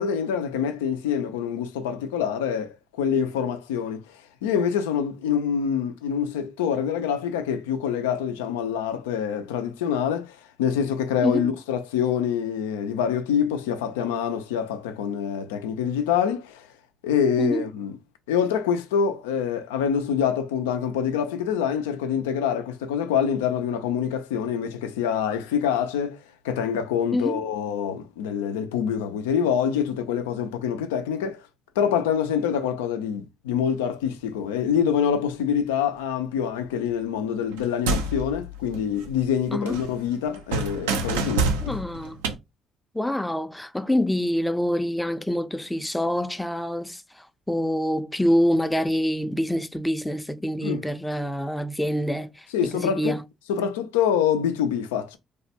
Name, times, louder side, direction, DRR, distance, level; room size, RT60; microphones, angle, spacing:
voice 1, 0.0-16.7 17.0-17.9 18.3-26.2 26.4-31.4 31.8-41.8 50.6-50.8 52.5-53.2 53.5-55.2, left 8 dB, 85° left, 0.4 m, -26 dB
voice 2, 27.1-27.4 39.5-39.8 41.6-42.3 42.9-52.5 52.7-53.2, equal, 5° left, 0.5 m, -26 dB
sound 1, 37.5-39.4 39.7-42.4, right 3 dB, 90° right, 0.4 m, -28 dB
3.2 x 2.2 x 2.7 m
hypercardioid pair, 55°, 0 cm